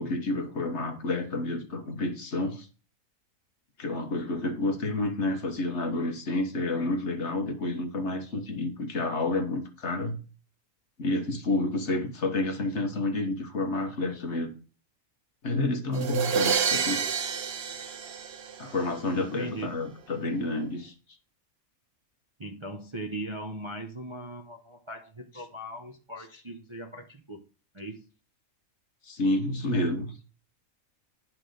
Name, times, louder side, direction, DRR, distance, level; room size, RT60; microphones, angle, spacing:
voice 1, 0.0-2.7 3.8-10.2 11.0-14.5 15.4-17.0 18.6-20.9 29.0-30.2, left 2 dB, 55° left, 1.5 m, -29 dB
sound 1, 15.9-18.9, right 7 dB, 50° right, 0.9 m, -28 dB
voice 2, 19.2-19.8 22.4-27.4 27.7-28.1, right 1 dB, 25° right, 0.7 m, -39 dB
10.5 x 3.8 x 6.4 m
omnidirectional pair, 1.5 m